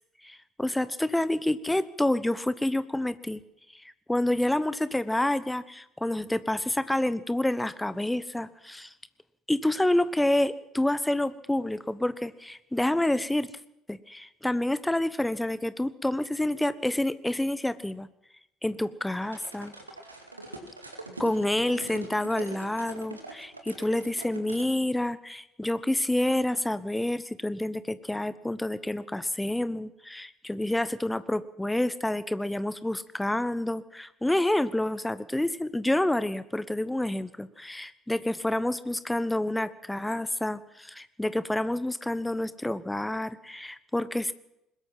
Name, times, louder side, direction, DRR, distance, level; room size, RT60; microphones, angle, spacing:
voice 1, 0.2-3.4 4.1-8.9 9.5-13.5 13.9-18.1 18.6-19.7 21.2-44.3, left 1 dB, 5° left, 15 dB, 1.1 m, -28 dB
sound 1, 19.2-24.7, right 2 dB, 85° right, 2.3 m, -43 dB
22.0 x 20.5 x 5.8 m, 0.85 s
figure-of-eight pair, 60°, 0 cm